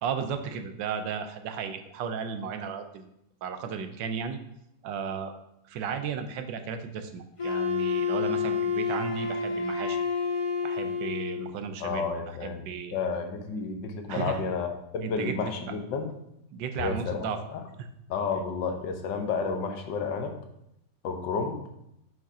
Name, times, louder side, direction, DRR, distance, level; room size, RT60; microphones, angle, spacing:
voice 1, 0.0-3.1 3.4-4.4 4.8-5.3 5.7-10.0 10.6-13.0 14.1-14.4 15.0-15.5 16.5-17.4 17.8-17.9, right 6 dB, 80° right, 8 dB, 1.3 m, -34 dB
Wind instrument woodwind instrument, 7.4-11.5, left 5 dB, 30° left, 0.6 m, -29 dB
voice 2, 11.8-12.6 12.9-16.1 16.8-17.6 18.1-20.3 21.0-21.6, left 5 dB, 80° left, 5 dB, 1.5 m, -31 dB
7.1 x 6.0 x 2.7 m, 0.79 s
omnidirectional pair, 2.0 m